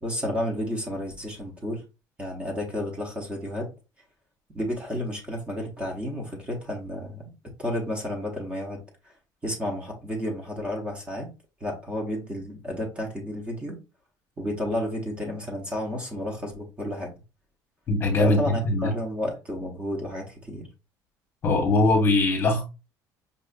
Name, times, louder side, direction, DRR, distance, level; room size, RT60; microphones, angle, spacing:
voice 1, 0.0-1.8 2.2-3.7 4.5-7.3 7.6-8.8 9.4-11.3 11.6-13.8 14.4-17.1 18.2-20.7, left 1 dB, 15° right, 0.8 m, -31 dB
voice 2, 17.9-18.9 21.4-22.6, left 2 dB, 30° left, 1.0 m, -21 dB
5.3 x 2.4 x 2.4 m
cardioid pair, 170°, 8 cm